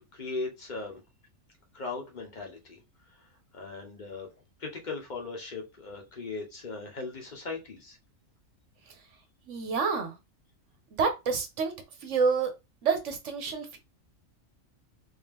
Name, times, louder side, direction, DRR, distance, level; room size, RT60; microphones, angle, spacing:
voice 1, 0.1-1.0 1.7-2.8 3.5-4.3 4.6-8.0, left 3 dB, 35° left, 1.1 m, -38 dB
voice 2, 9.5-10.1 11.0-11.7 12.0-12.5 12.8-13.8, right 5 dB, 65° right, 1.1 m, -28 dB
3.6 x 2.8 x 3.6 m
omnidirectional pair, 1.4 m